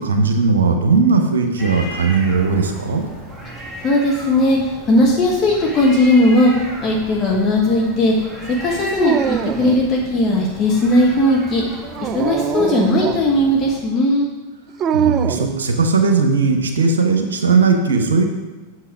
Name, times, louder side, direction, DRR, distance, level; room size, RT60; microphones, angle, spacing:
voice 1, 0.0-3.1 14.9-18.3, right 4 dB, 70° right, 5 dB, 1.0 m, -17 dB
sound 1, 1.6-13.8, equal, 10° right, 1.6 m, -35 dB
voice 2, 3.8-6.5 6.8-8.3 8.6-11.6 12.0-14.3, left 1 dB, 30° left, -2 dB, 1.4 m, -17 dB
Dog, 8.9-9.9 11.8-13.3 14.8-15.6, right 9 dB, 30° right, 0.3 m, -22 dB
8.0 x 6.2 x 4.9 m, 1.3 s
figure-of-eight pair, 90°, 0 cm